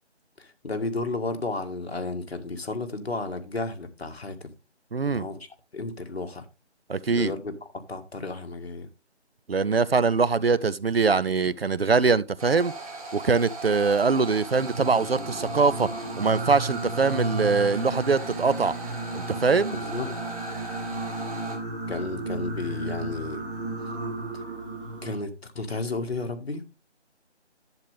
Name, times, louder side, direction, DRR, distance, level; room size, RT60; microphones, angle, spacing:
voice 1, 0.4-4.5 5.1-6.4 7.1-8.9 19.7-20.2 21.9-23.4 25.0-26.6, left 3 dB, 60° left, 1.9 m, -33 dB
voice 2, 4.9-5.3 6.9-7.3 9.5-12.7 13.1-15.9 16.2-18.7 19.1-19.8, right 4 dB, 60° right, 0.6 m, -23 dB
sound 1, 12.4-21.6, right 3 dB, 30° right, 2.6 m, -38 dB
Singing, 14.4-25.2, right 2 dB, 5° right, 1.0 m, -34 dB
10.5 x 8.3 x 3.5 m
figure-of-eight pair, 165°, 35 cm